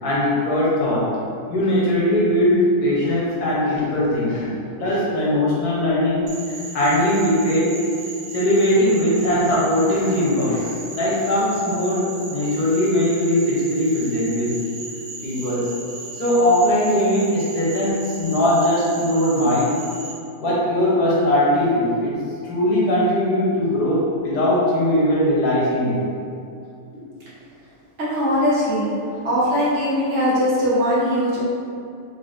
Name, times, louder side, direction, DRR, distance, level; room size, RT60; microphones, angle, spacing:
voice 1, 0.0-1.1 1.5-4.5 4.8-6.2 6.7-7.7 8.3-14.6 15.2-15.7 16.1-19.8 20.4-22.1 22.4-26.0, left 1 dB, 75° left, -6 dB, 1.5 m, -20 dB
Frog, 6.3-20.1, right 3 dB, 80° right, 1.2 m, -36 dB
voice 2, 28.0-28.9 29.2-31.4, equal, 50° right, -9 dB, 1.4 m, -20 dB
3.9 x 3.4 x 2.6 m, 2.5 s
omnidirectional pair, 1.7 m